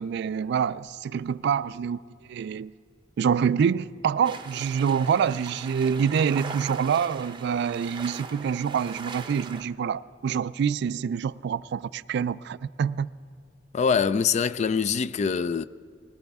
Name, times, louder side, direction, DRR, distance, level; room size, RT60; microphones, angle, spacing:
voice 1, 0.0-2.0 2.3-2.7 3.2-13.1, right 7 dB, 65° right, 0.3 m, -26 dB
sound 1, 4.2-9.6, right 4 dB, 25° right, 0.7 m, -40 dB
voice 2, 13.7-15.6, left 6 dB, 40° left, 0.3 m, -24 dB
20.5 x 17.5 x 3.5 m
head